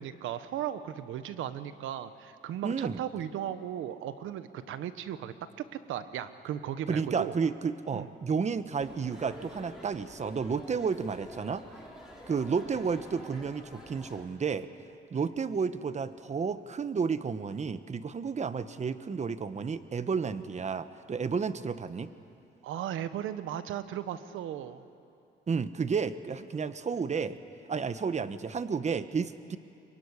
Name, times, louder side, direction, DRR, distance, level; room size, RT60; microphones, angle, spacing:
voice 1, 0.0-7.3 7.9-8.1 15.1-15.2 22.6-24.8, right 10 dB, 85° right, 12 dB, 1.3 m, -36 dB
voice 2, 2.6-3.0 6.9-11.7 12.3-14.7 15.1-22.1 25.5-27.4 27.7-29.6, right 5 dB, 35° right, 12 dB, 1.2 m, -31 dB
sound 1, 8.8-14.2, equal, 5° right, 6.2 m, -49 dB
24.0 x 22.5 x 9.9 m, 2.6 s
cardioid pair, 90°, 20 cm